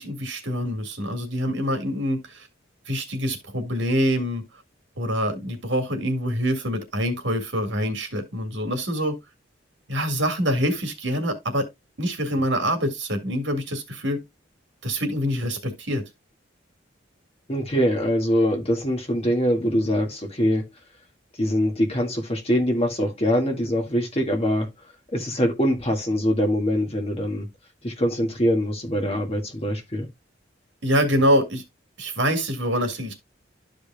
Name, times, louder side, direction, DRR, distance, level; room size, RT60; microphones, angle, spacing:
voice 1, 0.0-2.5 2.9-4.4 5.0-9.1 9.9-11.7 12.0-14.2 14.8-16.0 30.8-31.6 32.0-33.1, equal, 70° right, 2.0 m, -25 dB
voice 2, 17.5-20.7 21.4-24.7 25.1-27.5 27.8-30.1, equal, 30° left, 1.8 m, -23 dB
12.5 x 5.1 x 2.3 m
head